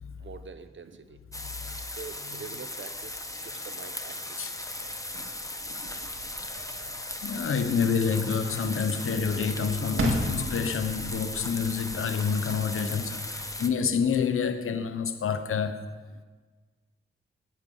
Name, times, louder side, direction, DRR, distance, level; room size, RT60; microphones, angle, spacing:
voice 1, 0.2-1.2 1.9-4.4 5.1-6.4 12.1-12.4 13.9-14.1, right 5 dB, 65° right, 1.1 m, -46 dB
voice 2, 1.3-1.9 4.4-4.5 7.2-15.9, left 6 dB, 85° left, 1.1 m, -28 dB
sound 1, 1.3-13.7, left 1 dB, 15° left, 1.3 m, -37 dB
sound 2, 3.9-14.9, right 2 dB, 85° right, 2.1 m, -39 dB
17.5 x 10.5 x 5.6 m
cardioid pair, 55°, 21 cm